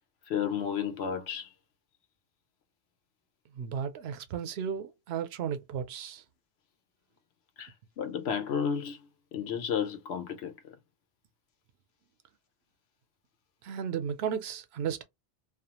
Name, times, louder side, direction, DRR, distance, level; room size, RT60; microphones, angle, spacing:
voice 1, 0.3-1.5 7.6-10.8, left 7 dB, 85° left, 0.9 m, -33 dB
voice 2, 3.5-6.2 13.6-15.0, right 8 dB, 85° right, 0.8 m, -34 dB
2.4 x 2.2 x 2.8 m
omnidirectional pair, 1.0 m